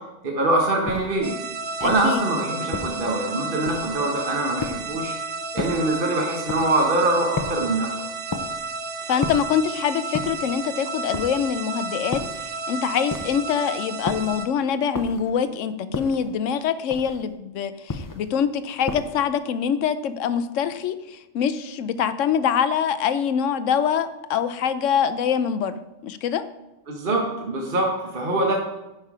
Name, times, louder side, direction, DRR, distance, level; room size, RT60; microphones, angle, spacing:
voice 1, 0.2-1.3 1.8-5.1 5.5-8.0 26.9-28.5, right 2 dB, 45° right, 0 dB, 1.3 m, -23 dB
sound 1, 0.9-1.3 1.8-2.2 2.7-3.1 3.7-4.1 4.6-5.0 5.6-5.9 6.5-6.8 7.4-7.8 8.3-8.7 9.2-9.6 10.1-10.6 11.1-11.6 12.1-12.5 13.1-13.5 14.1-14.4 14.9-15.4 15.9-16.3 16.9-17.3 17.9-18.3 18.9-19.3, left 3 dB, 35° left, 0.3 m, -33 dB
sound 2, 1.2-14.5, right 4 dB, 75° right, 1.2 m, -32 dB
voice 2, 1.8-2.2 9.1-26.4, left 7 dB, 80° left, 13 dB, 1.0 m, -24 dB
9.8 x 5.6 x 4.8 m, 0.97 s
omnidirectional pair, 1.3 m